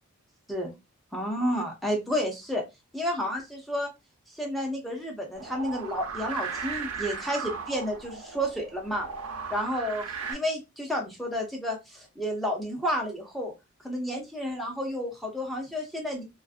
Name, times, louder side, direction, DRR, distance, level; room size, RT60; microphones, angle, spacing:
voice 1, 1.1-2.6 2.9-3.9 4.4-9.1 9.5-13.5 13.8-16.2, equal, ahead, 0 dB, 0.5 m, -31 dB
sound 1, 5.3-10.3, right 5 dB, 85° right, 0.7 m, -37 dB
2.4 x 2.4 x 2.4 m, 0.23 s
head